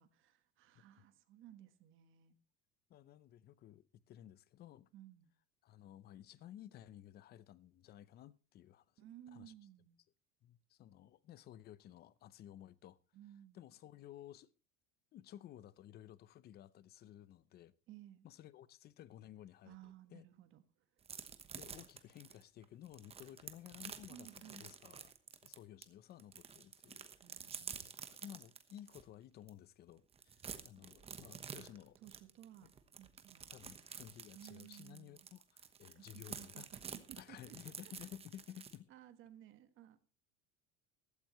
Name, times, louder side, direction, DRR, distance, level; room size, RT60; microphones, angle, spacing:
voice 1, 0.0-2.3 4.9-5.3 9.0-10.0 13.1-13.7 17.9-18.2 19.6-20.6 24.1-24.7 27.2-28.0 31.5-32.7 33.0-33.5 34.3-35.3 35.9-37.6 37.8-37.9 38.9-40.0, right 12 dB, 45° right, 1.4 m, -58 dB
voice 2, 2.9-4.9 5.6-8.8 9.3-9.5 10.4-13.0 13.5-14.5 15.1-17.7 18.2-20.2 21.6-25.1 25.4-27.1 27.6-27.7 28.1-32.0 32.6-32.7 33.5-36.7 37.2-38.9, left 12 dB, 35° left, 0.7 m, -55 dB
sound 1, 21.0-25.8 26.2-29.0 29.5-29.6 29.9-38.8, right 7 dB, 20° right, 1.1 m, -50 dB
15.5 x 13.0 x 3.1 m
cardioid pair, 145°, 29 cm